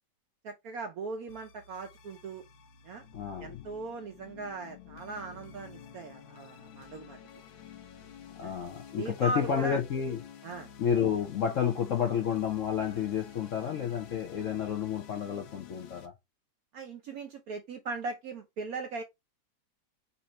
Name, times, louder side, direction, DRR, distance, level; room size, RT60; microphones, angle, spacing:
voice 1, 0.4-2.4 2.8-3.0 3.4-7.2 8.4-8.5 9.0-9.8 10.4-10.7 16.7-19.0, right 3 dB, 70° right, 0.9 m, -39 dB
sound 1, 1.3-16.1, left 8 dB, 90° left, 1.6 m, -50 dB
voice 2, 3.1-3.6 8.4-10.2 10.8-16.1, left 8 dB, 65° left, 0.8 m, -30 dB
4.2 x 2.6 x 4.2 m
omnidirectional pair, 2.1 m